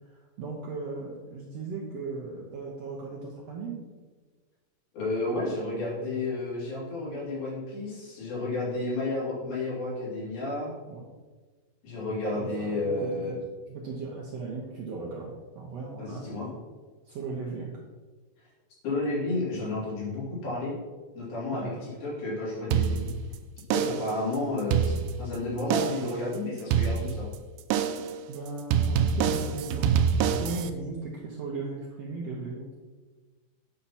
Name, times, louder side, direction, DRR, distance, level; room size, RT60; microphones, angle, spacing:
voice 1, 0.4-3.8 10.9-11.0 12.3-13.4 13.7-16.3 17.1-17.8 21.5-21.8 28.3-32.7, right 4 dB, 70° right, -3 dB, 1.6 m, -37 dB
voice 2, 4.9-10.7 11.8-13.4 16.0-16.5 18.8-20.8 21.2-23.1 23.7-27.3, left 2 dB, 85° left, -7 dB, 4.9 m, -31 dB
sound 1, 22.7-23.3 23.7-24.2 24.6-25.3 25.7-26.2 26.7-27.3 27.7-28.2 28.7-30.7, right 7 dB, 85° right, 2.3 m, -26 dB
9.1 x 5.9 x 4.2 m, 1.4 s
omnidirectional pair, 4.1 m